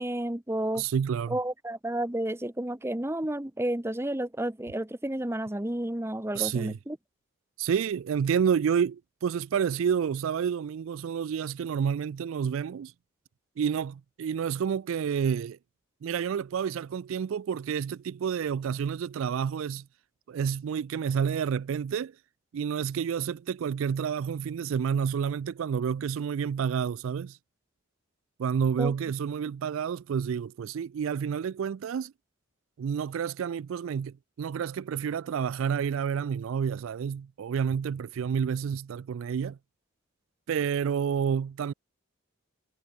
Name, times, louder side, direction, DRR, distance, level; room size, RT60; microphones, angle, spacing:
voice 1, 0.0-0.8 1.3-7.0 28.8-28.9, right 1 dB, 10° right, 0.8 m, -31 dB
voice 2, 0.7-1.4 6.3-6.8 7.6-12.9 13.6-15.6 16.0-19.9 20.3-22.1 22.5-27.4 28.4-32.1 32.8-39.6 40.5-41.7, right 7 dB, 70° right, 0.3 m, -29 dB
head